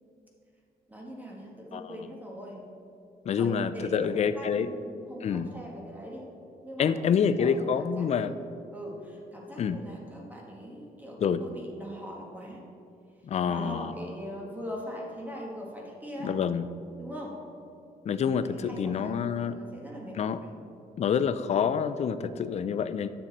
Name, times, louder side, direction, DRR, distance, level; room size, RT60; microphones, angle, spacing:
voice 1, 0.9-2.6 3.4-6.3 6.6-8.4 8.7-12.6 13.5-16.3 17.0-17.3 18.3-20.5, equal, 10° right, -2 dB, 1.6 m, -41 dB
voice 2, 3.3-4.7 5.2-5.5 6.8-8.3 9.6-9.8 11.2-11.4 13.2-13.9 16.2-16.6 18.1-19.5 20.2-20.4 21.0-23.1, left 7 dB, 45° left, 12 dB, 0.4 m, -27 dB
10.0 x 6.5 x 4.2 m, 2.7 s
cardioid pair, 120°, 16 cm